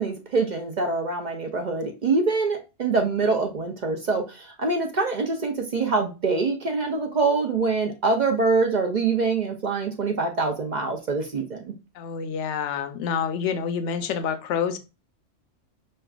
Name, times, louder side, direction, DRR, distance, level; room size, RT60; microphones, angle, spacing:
voice 1, 0.0-11.7, right 4 dB, 55° right, 3 dB, 0.5 m, -25 dB
voice 2, 11.9-14.8, left 7 dB, 75° left, 9 dB, 0.9 m, -27 dB
6.3 x 2.3 x 2.3 m, 0.29 s
omnidirectional pair, 1.3 m